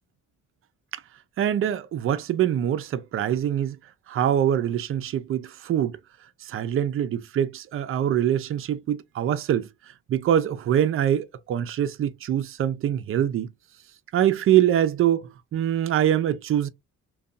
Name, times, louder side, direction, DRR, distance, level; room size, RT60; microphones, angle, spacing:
voice 1, 1.4-3.8 4.1-6.0 6.4-9.7 10.1-13.5 14.1-16.7, right 10 dB, 45° right, 0.4 m, -24 dB
2.6 x 2.3 x 2.4 m
cardioid pair, 90°, 30 cm